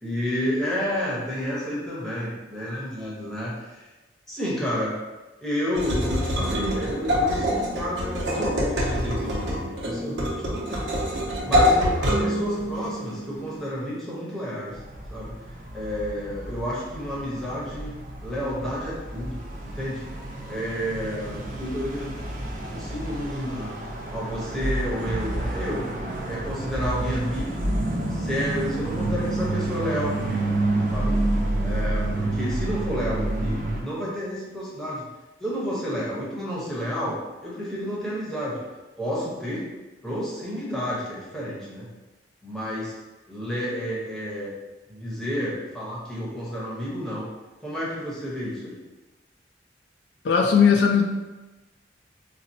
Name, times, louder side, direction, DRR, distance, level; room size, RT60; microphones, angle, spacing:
voice 1, 0.0-3.9 4.3-5.0 5.4-10.9 11.4-14.8 15.1-15.3 15.7-17.9 18.2-20.0 20.5-23.8 24.1-25.8 26.2-27.7 28.1-30.5 30.9-31.2 31.6-35.1 35.4-37.2 37.4-38.6 39.0-39.7 40.0-41.9 42.4-42.9 43.3-44.5 44.9-47.3 47.6-48.8, equal, 5° left, -8 dB, 0.9 m, -30 dB
sound 1, 5.8-13.7, equal, 85° right, 0.7 m, -25 dB
sound 2, 14.7-33.8, right 2 dB, 50° right, 0.5 m, -29 dB
voice 2, 50.2-51.0, left 6 dB, 75° left, 1 dB, 0.3 m, -18 dB
4.1 x 2.0 x 2.6 m, 1.1 s
head